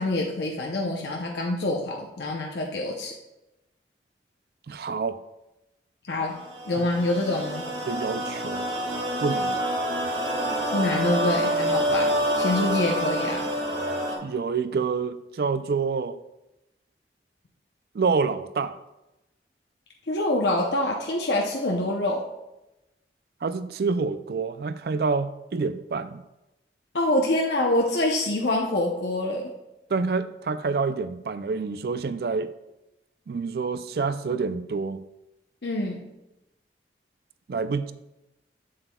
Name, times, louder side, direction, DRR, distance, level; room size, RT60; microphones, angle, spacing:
voice 1, 0.0-3.1 6.1-6.4 6.7-7.6 10.7-13.5 20.1-22.2 26.9-29.5 35.6-36.1, left 1 dB, 75° left, -1 dB, 0.7 m, -26 dB
voice 2, 4.7-5.2 6.8-6.9 7.9-8.7 9.2-9.6 14.2-16.2 17.9-18.8 23.4-26.2 29.9-32.5 33.3-35.0 37.5-37.9, right 4 dB, 60° right, 13 dB, 0.4 m, -27 dB
sound 1, 6.3-14.2, equal, 90° right, 2.0 m, -27 dB
8.0 x 7.5 x 2.3 m, 0.95 s
head